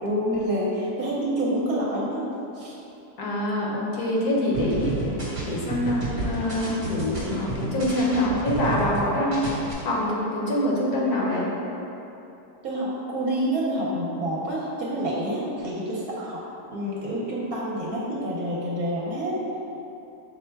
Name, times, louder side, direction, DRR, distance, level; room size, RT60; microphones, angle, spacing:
voice 1, 0.0-2.2 2.6-2.8 12.6-16.4 16.7-19.4, right 1 dB, 65° right, -5 dB, 1.1 m, -27 dB
voice 2, 3.2-4.9 5.5-9.5 9.8-11.5, left 1 dB, 70° left, -4 dB, 1.2 m, -25 dB
sound 1, 4.5-9.0 9.3-9.7, right 2 dB, 25° right, 0.8 m, -30 dB
5.6 x 2.1 x 4.4 m, 2.9 s
omnidirectional pair, 1.8 m